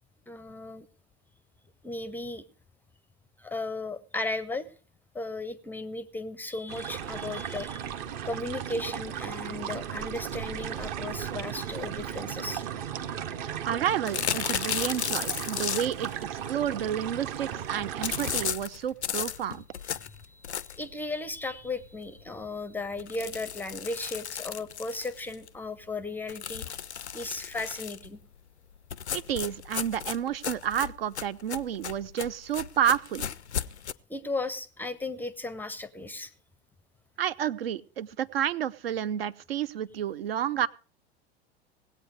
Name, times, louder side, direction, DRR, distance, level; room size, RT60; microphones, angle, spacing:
voice 1, 0.3-0.9 1.8-2.4 3.4-4.7 5.1-8.0 8.2-13.5 19.9-26.8 27.1-28.2 34.1-36.3, left 2 dB, 5° left, 16 dB, 0.5 m, -36 dB
sound 1, 6.7-18.5, right 9 dB, 45° right, 1.0 m, -36 dB
voice 2, 13.6-19.6 29.1-33.3 37.2-40.7, right 10 dB, 65° right, 18 dB, 0.5 m, -30 dB
sound 2, 14.1-16.1 18.0-20.9 21.4-21.5 21.8-21.9 22.2-22.3 23.0-25.5 26.3-28.1 28.9-33.9, left 8 dB, 85° left, 0.5 m, -34 dB
18.0 x 8.3 x 4.8 m, 0.40 s
figure-of-eight pair, 85°, 33 cm